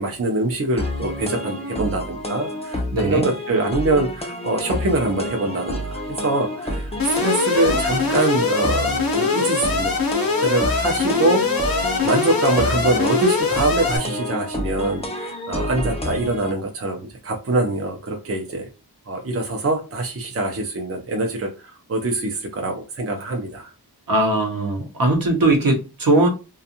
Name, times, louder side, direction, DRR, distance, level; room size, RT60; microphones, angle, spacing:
voice 1, 0.0-10.0 10.4-11.4 11.8-18.7 19.1-23.7, right 2 dB, 40° right, 0.5 m, -24 dB
sound 1, 0.8-16.5, left 1 dB, 15° left, 0.5 m, -29 dB
voice 2, 2.9-3.3 24.1-26.3, right 2 dB, 60° right, 0.8 m, -19 dB
Alarm, 7.0-14.0, left 4 dB, 60° left, 0.7 m, -22 dB
2.5 x 2.3 x 2.7 m
wide cardioid pair, 80°, 39 cm